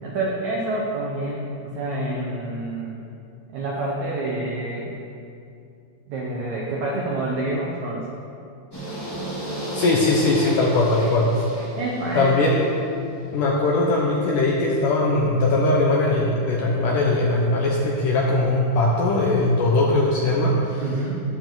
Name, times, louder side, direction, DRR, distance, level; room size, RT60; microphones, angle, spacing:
voice 1, 0.0-3.0 3.5-4.9 6.1-8.1 11.8-12.5 20.8-21.2, right 2 dB, 75° right, -3 dB, 1.6 m, -27 dB
sound 1, 8.7-12.8, right 1 dB, 5° left, 2.0 m, -33 dB
voice 2, 9.7-11.5 12.1-12.6 13.3-20.8, left 2 dB, 75° left, -2 dB, 2.0 m, -20 dB
19.5 x 6.9 x 4.0 m, 2.6 s
omnidirectional pair, 4.9 m